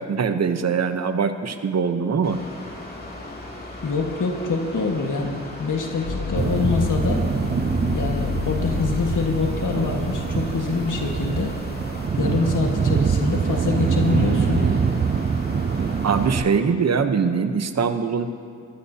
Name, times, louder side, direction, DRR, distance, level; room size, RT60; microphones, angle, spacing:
voice 1, 0.0-2.4 16.0-18.3, right 6 dB, 60° right, 8 dB, 0.8 m, -22 dB
Mechanical fan, 2.2-16.4, left 2 dB, 30° left, 2.6 m, -38 dB
voice 2, 3.8-7.2 7.9-11.5 12.2-14.9, left 4 dB, 80° left, 1 dB, 1.6 m, -25 dB
sound 1, 6.1-13.9 14.4-15.2, left 3 dB, 55° left, 1.8 m, -31 dB
sound 2, 6.4-16.4, right 6 dB, 35° right, 0.4 m, -24 dB
22.5 x 15.0 x 2.8 m, 2.2 s
cardioid pair, 65°, 31 cm